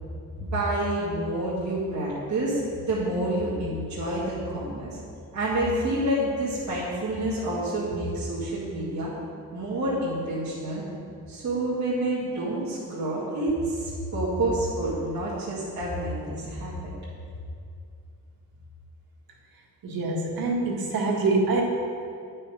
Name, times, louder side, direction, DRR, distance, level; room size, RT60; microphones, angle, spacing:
voice 1, 0.4-5.0 5.3-9.1 9.5-10.8 11.3-16.7, right 1 dB, 55° right, -9 dB, 2.3 m, -28 dB
voice 2, 19.8-21.6, right 3 dB, 90° right, -1 dB, 1.5 m, -25 dB
10.0 x 5.6 x 5.1 m, 2.4 s
cardioid pair, 115°, 34 cm